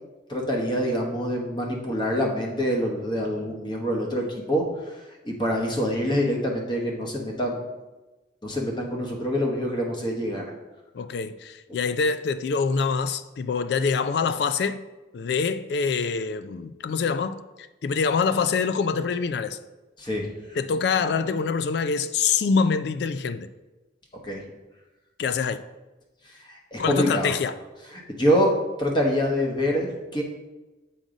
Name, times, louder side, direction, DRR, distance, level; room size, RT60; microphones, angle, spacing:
voice 1, 0.3-4.6 5.2-7.6 8.4-10.5 20.0-20.3 24.2-24.4 26.5-27.3 28.2-28.5 28.8-30.2, equal, 25° left, 1.1 m, -25 dB
voice 2, 10.9-14.8 15.1-19.6 20.5-23.5 25.2-25.6 26.8-27.6, left 5 dB, 65° left, 0.3 m, -25 dB
7.6 x 3.9 x 5.0 m
head